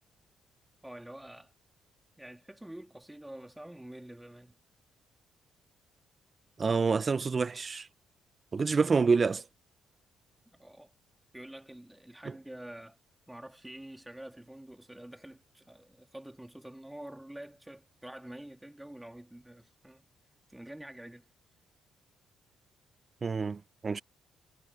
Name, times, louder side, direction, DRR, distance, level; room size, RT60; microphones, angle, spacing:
voice 1, 0.8-1.5 2.2-4.5 10.5-10.9 11.3-13.0 13.3-20.1 20.5-21.3, right 1 dB, 5° right, 2.5 m, -47 dB
voice 2, 6.6-7.9 8.5-9.4 12.3-12.4 23.2-24.0, right 4 dB, 35° right, 0.4 m, -27 dB
cardioid pair, 90°, 0 cm